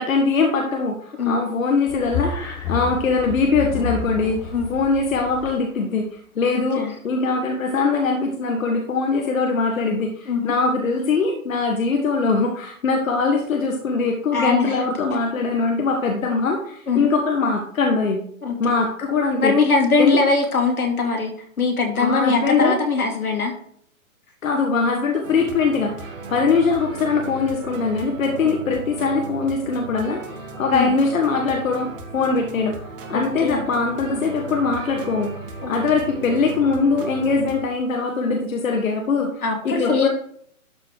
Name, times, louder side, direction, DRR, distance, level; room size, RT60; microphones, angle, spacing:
voice 1, 0.0-6.0 6.3-18.2 18.6-19.5 20.0-20.2 22.0-22.7 24.4-31.9 32.1-32.7 33.1-35.3 35.7-40.1, left 4 dB, 65° left, 1 dB, 1.6 m, -22 dB
sound 1, 1.9-5.5, left 6 dB, 5° left, 0.8 m, -30 dB
voice 2, 14.3-14.8 16.9-17.1 18.4-18.6 19.4-23.5 30.7-30.9 33.1-33.7 34.2-34.3 35.6-35.7 39.4-40.1, left 4 dB, 85° left, 2 dB, 2.7 m, -21 dB
sound 2, 25.2-37.6, right 3 dB, 40° right, 1.8 m, -36 dB
12.0 x 4.3 x 4.7 m, 0.64 s
hypercardioid pair, 145°, 43 cm